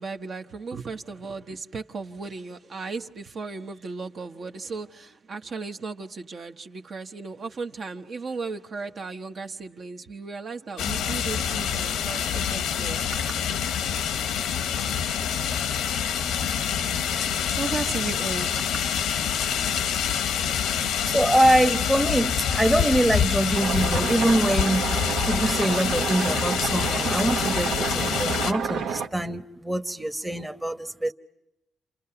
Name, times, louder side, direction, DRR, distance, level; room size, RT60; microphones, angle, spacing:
voice 1, 0.0-13.4 17.1-18.8, right 4 dB, 50° right, 1.1 m, -35 dB
sound 1, 10.8-28.5, left 8 dB, 85° left, 1.0 m, -26 dB
voice 2, 21.0-25.0 25.3-31.1, right 1 dB, 10° right, 1.0 m, -24 dB
sound 2, 23.5-29.1, right 6 dB, 85° right, 1.1 m, -29 dB
29.0 x 28.0 x 5.8 m
cardioid pair, 90°, 0 cm